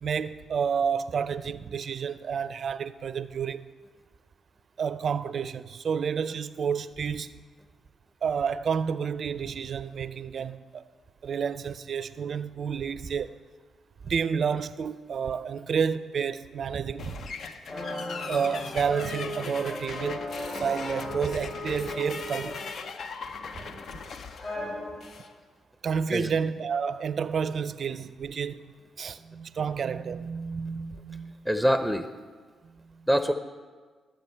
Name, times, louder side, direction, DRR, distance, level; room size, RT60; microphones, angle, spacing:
voice 1, 0.0-3.7 4.8-7.4 8.2-10.8 11.2-13.4 14.0-17.2 18.2-20.3 20.6-22.6 25.8-31.5 32.6-33.1, right 6 dB, 60° right, 0.4 m, -30 dB
sound 1, 17.0-25.3, left 5 dB, 65° left, 0.6 m, -40 dB
sound 2, 17.7-22.9 23.3-23.9 24.4-25.1, left 1 dB, 45° left, 3.0 m, -37 dB
voice 2, 31.5-32.1 33.1-33.3, equal, 5° left, 0.7 m, -24 dB
12.5 x 7.7 x 4.4 m
hypercardioid pair, 45°, 0 cm